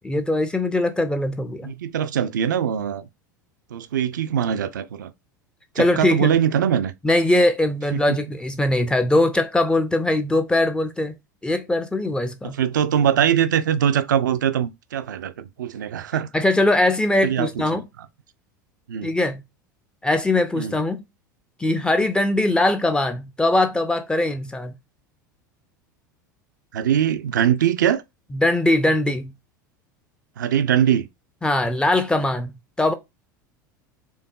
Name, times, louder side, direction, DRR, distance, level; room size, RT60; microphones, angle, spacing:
voice 1, 0.0-1.7 5.8-6.3 7.0-11.1 11.4-12.6 16.3-17.9 19.0-19.4 20.0-21.0 21.6-24.8 28.3-29.3 31.4-32.9, left 1 dB, 10° left, 0.4 m, -21 dB
voice 2, 1.6-3.0 3.7-5.1 5.8-6.9 7.9-8.2 12.6-16.3 17.2-17.5 18.9-19.1 20.6-20.7 26.7-28.0 30.4-31.1, right 9 dB, 70° right, 0.4 m, -22 dB
4.5 x 2.5 x 2.3 m
figure-of-eight pair, 80°, 11 cm